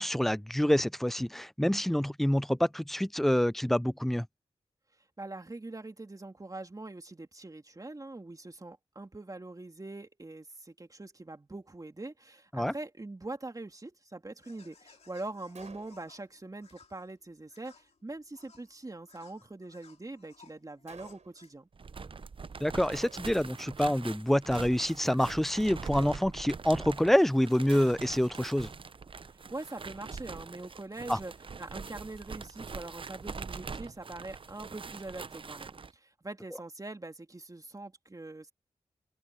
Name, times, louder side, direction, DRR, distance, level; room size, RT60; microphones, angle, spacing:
voice 1, 0.0-4.3 12.5-12.7 22.6-28.7 31.1-31.2, equal, ahead, 0.3 m, -27 dB
voice 2, 5.2-21.7 29.5-31.3 31.6-38.5, right 2 dB, 30° right, 3.0 m, -43 dB
sound 1, 14.4-21.7, left 5 dB, 60° left, 2.8 m, -61 dB
Gunshot gunfire, 15.5-16.2 20.9-21.5 22.9-23.6, right 5 dB, 70° right, 5.4 m, -52 dB
sound 2, 21.7-35.9, right 5 dB, 45° right, 0.7 m, -43 dB
cardioid pair, 50°, 12 cm